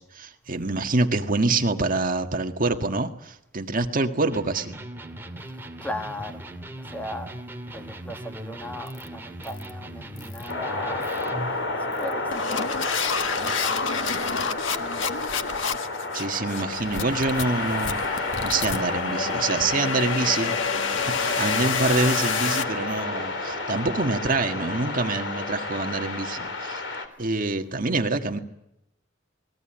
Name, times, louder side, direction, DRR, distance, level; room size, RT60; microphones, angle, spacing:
voice 1, 0.0-4.8 16.1-18.0 18.4-20.5 21.1-26.8 27.2-28.4, right 3 dB, 45° right, 1.7 m, -26 dB
Electric guitar, 4.3-11.6, right 1 dB, 10° right, 2.3 m, -39 dB
voice 2, 5.8-6.5 6.8-7.4 7.7-11.1 11.4-12.9 13.2-13.7 14.1-15.3, left 1 dB, 10° left, 1.6 m, -38 dB
sound 1, 8.9-9.1 9.4-9.7 10.2-10.5 11.0-11.3 11.9-22.6, left 5 dB, 85° left, 1.5 m, -29 dB
sound 2, 10.5-27.1, left 2 dB, 70° left, 3.7 m, -30 dB
27.5 x 20.5 x 9.0 m
head